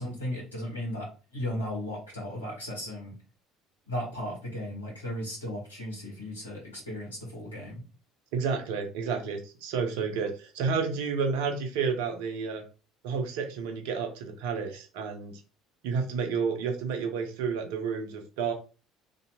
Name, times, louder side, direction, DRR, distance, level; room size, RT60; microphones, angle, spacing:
voice 1, 0.0-3.1 3.9-7.8, left 1 dB, 85° left, -3 dB, 1.4 m, -36 dB
voice 2, 8.3-12.6 13.0-15.3 15.8-18.5, right 5 dB, 65° right, 4 dB, 0.8 m, -30 dB
2.9 x 2.7 x 2.8 m, 0.34 s
figure-of-eight pair, 60°, 0 cm